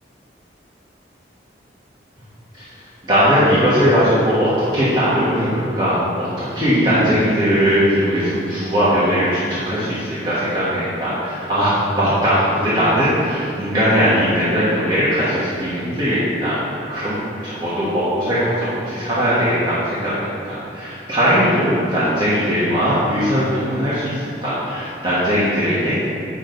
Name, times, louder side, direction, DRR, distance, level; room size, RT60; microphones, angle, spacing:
voice 1, 3.0-16.6 16.9-17.1 17.4-26.1, equal, 25° right, -12 dB, 1.5 m, -19 dB
8.8 x 6.2 x 3.9 m, 2.5 s
head